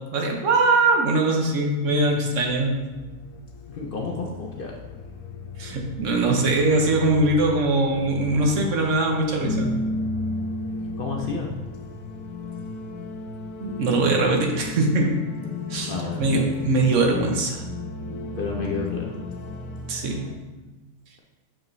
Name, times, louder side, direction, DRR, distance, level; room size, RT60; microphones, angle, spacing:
voice 1, 0.1-2.8 5.6-9.7 13.6-15.2 15.7-17.6 19.9-20.2, right 2 dB, 70° right, 2 dB, 1.1 m, -22 dB
sound 1, 1.9-20.4, left 3 dB, 80° left, 1.1 m, -34 dB
voice 2, 3.7-4.7 11.0-11.5 15.9-16.5 18.4-19.2, left 4 dB, 55° left, -1 dB, 0.6 m, -30 dB
6.2 x 4.8 x 3.1 m, 1.2 s
omnidirectional pair, 1.4 m